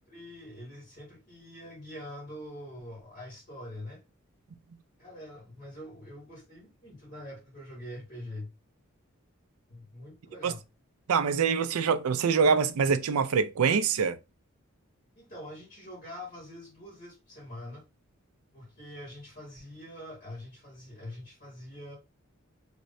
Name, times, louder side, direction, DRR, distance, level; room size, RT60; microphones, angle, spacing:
voice 1, 0.1-4.0 5.0-8.5 9.7-10.6 15.2-17.8 18.5-22.0, left 1 dB, 40° left, 1.7 m, -44 dB
voice 2, 11.1-14.2, right 6 dB, 85° right, 0.4 m, -25 dB
3.6 x 3.1 x 2.6 m
head